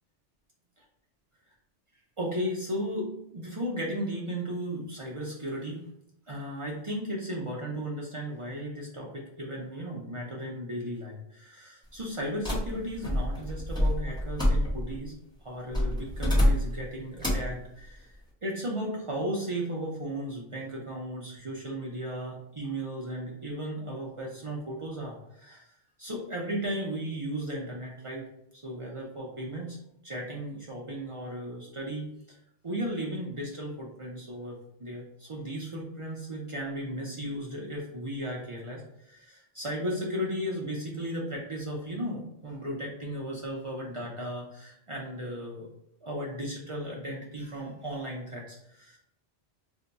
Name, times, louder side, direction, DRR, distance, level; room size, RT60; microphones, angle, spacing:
voice 1, 2.2-5.8 6.3-15.1 15.4-18.1 18.4-25.6 26.0-28.2 28.5-29.8 30.0-32.4 32.6-45.7 46.0-49.0, equal, 45° right, -3 dB, 0.4 m, -35 dB
sound 1, 12.4-15.0 15.7-16.8 17.2-17.6, left 1 dB, 5° left, 0.9 m, -27 dB
2.6 x 2.2 x 3.8 m, 0.76 s
omnidirectional pair, 1.2 m